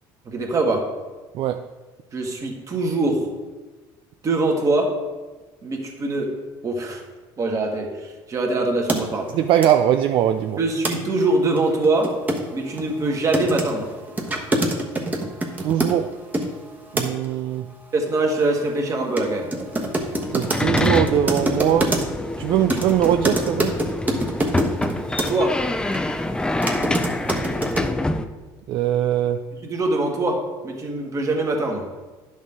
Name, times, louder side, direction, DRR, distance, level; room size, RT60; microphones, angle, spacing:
voice 1, 0.3-0.9 2.1-3.3 4.2-4.9 5.6-6.3 6.6-7.0 7.4-9.3 10.6-12.2 12.5-13.9 17.9-19.5 25.3-25.6 29.5-31.8, right 2 dB, 35° right, 1 dB, 1.7 m, -23 dB
sound 1, 8.9-9.0 9.6-9.7 10.8-11.0 11.2-11.3 11.6-16.5 17.0-17.3 19.2-19.3 19.5-22.2 22.7-25.3 25.9-26.0 26.4-27.9, right 1 dB, 15° right, 1.2 m, -24 dB
voice 2, 9.3-10.6 15.6-16.1 16.9-17.7 20.3-22.0 22.4-23.8 28.7-29.4, right 11 dB, 60° right, 8 dB, 0.4 m, -21 dB
sound 2, 20.0-28.2, left 2 dB, 10° left, 0.4 m, -26 dB
10.0 x 6.3 x 3.7 m, 1.3 s
cardioid pair, 110°, 10 cm